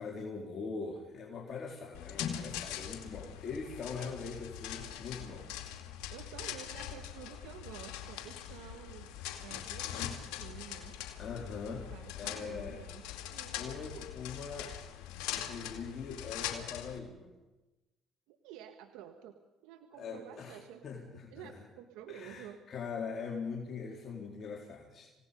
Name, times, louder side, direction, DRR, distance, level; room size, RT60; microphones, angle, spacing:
voice 1, 0.0-5.5 11.2-11.9 12.2-12.8 13.5-14.7 15.1-17.3 20.0-21.5 22.1-25.1, left 5 dB, 50° left, -1 dB, 3.9 m, -42 dB
sound 1, 1.9-17.0, left 11 dB, 85° left, 2.4 m, -42 dB
voice 2, 6.1-9.1 9.4-11.0 11.7-13.0 13.3-14.1 18.3-19.4 19.6-22.6, right 10 dB, 85° right, 7 dB, 1.5 m, -50 dB
28.0 x 17.5 x 5.4 m, 1.0 s
supercardioid pair, 80°, 0 cm